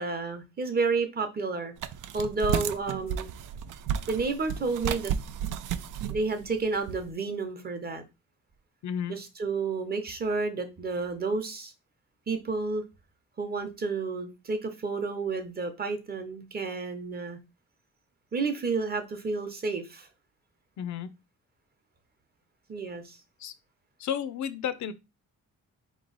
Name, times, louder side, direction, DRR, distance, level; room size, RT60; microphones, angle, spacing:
voice 1, 0.0-1.7 2.1-3.3 4.1-5.1 6.1-8.0 9.1-11.7 12.3-12.8 13.4-17.4 18.3-20.1 22.7-23.2, right 4 dB, 30° right, 0.8 m, -31 dB
sound 1, 1.8-7.1, right 9 dB, 85° right, 0.5 m, -33 dB
voice 2, 8.8-9.1 20.8-21.1 23.4-23.5 24.0-24.9, left 8 dB, 65° left, 0.5 m, -32 dB
4.2 x 3.0 x 3.9 m
wide cardioid pair, 160°, 31 cm